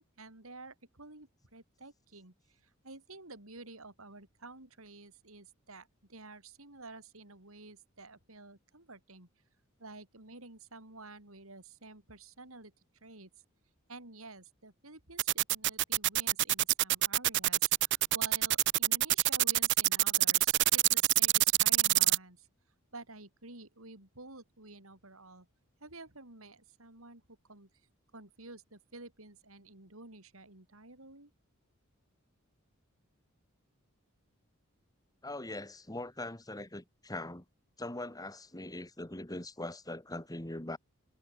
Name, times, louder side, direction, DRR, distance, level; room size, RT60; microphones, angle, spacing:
voice 1, 0.0-9.3 9.8-12.7 13.0-13.3 13.9-17.7 18.1-22.5 22.9-25.5 25.8-27.7 28.1-31.3, right 2 dB, 80° right, 5.4 m, -51 dB
sound 1, 15.2-22.2, right 17 dB, 55° right, 0.5 m, -25 dB
voice 2, 35.2-37.4 37.8-40.8, left 1 dB, 20° left, 2.6 m, -41 dB
head